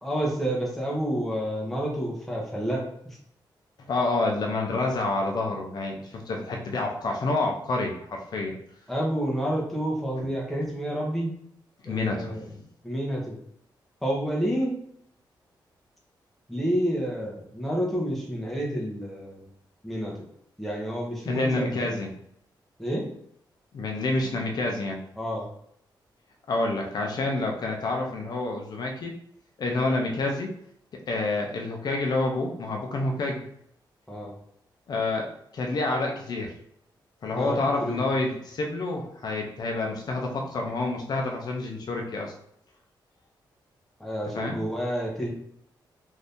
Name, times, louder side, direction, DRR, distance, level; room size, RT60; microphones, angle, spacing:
voice 1, 0.0-3.2 8.9-11.3 11.9-12.5 12.8-13.4 14.0-14.8 16.5-19.4 19.8-20.1 20.6-22.0 22.8-23.1 25.2-25.4 34.1-34.3 37.4-38.0 44.0-45.3, equal, ahead, -3 dB, 0.8 m, -29 dB
voice 2, 3.9-8.5 11.8-12.6 21.3-22.1 23.7-25.0 26.5-29.1 29.6-30.5 30.9-33.4 34.9-36.5 37.2-42.3 44.3-44.6, left 2 dB, 55° left, 1 dB, 0.5 m, -28 dB
2.7 x 2.6 x 3.5 m, 0.70 s
wide cardioid pair, 140°, 8 cm